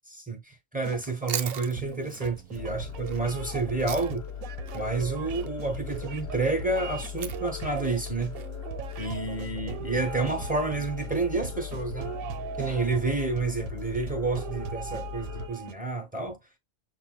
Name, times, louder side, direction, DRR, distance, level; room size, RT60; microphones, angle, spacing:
voice 1, 0.1-4.3 4.7-8.4 9.0-12.1 12.6-16.4, right 3 dB, 5° right, 0.9 m, -30 dB
sound 1, 0.8-15.7, right 9 dB, 90° right, 1.0 m, -40 dB
Chewing mastication, 0.9-4.4 4.7-9.0, right 9 dB, 60° right, 0.7 m, -41 dB
sound 2, 2.5-15.5, left 8 dB, 60° left, 0.8 m, -39 dB
6.9 x 2.6 x 2.2 m
omnidirectional pair, 1.4 m